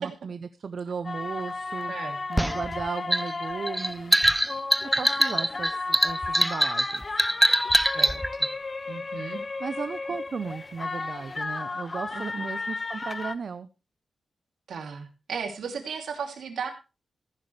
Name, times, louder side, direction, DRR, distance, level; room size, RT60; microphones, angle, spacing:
voice 1, 0.0-1.9 2.3-4.2 5.0-7.0 9.6-13.7, right 5 dB, 55° right, 12 dB, 0.7 m, -35 dB
sound 1, 1.0-13.3, left 3 dB, 30° left, 0.7 m, -34 dB
sound 2, 2.4-8.5, right 1 dB, 5° right, 0.5 m, -23 dB
sound 3, 6.0-10.2, right 2 dB, 25° right, 3.7 m, -53 dB
voice 2, 8.9-9.4 12.1-12.5 14.7-16.7, right 6 dB, 90° right, 4 dB, 2.8 m, -35 dB
14.5 x 11.0 x 3.3 m, 0.29 s
wide cardioid pair, 130°, 0 cm